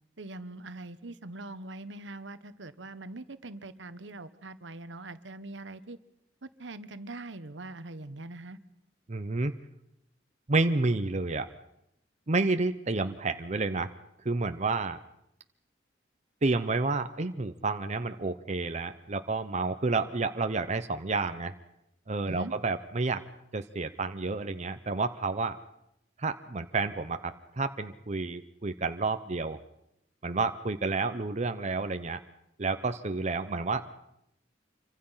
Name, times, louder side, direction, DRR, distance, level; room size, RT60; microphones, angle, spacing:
voice 1, 0.2-6.0 6.4-8.6 22.2-22.5, right 2 dB, 75° right, 13 dB, 1.2 m, -42 dB
voice 2, 9.1-9.5 10.5-11.5 12.3-13.9 14.2-15.0 16.4-21.5 22.1-23.2 23.5-25.6 26.2-29.6 30.2-32.2 32.6-33.9, right 3 dB, 40° right, 8 dB, 0.8 m, -30 dB
26.5 x 24.0 x 5.7 m, 0.80 s
head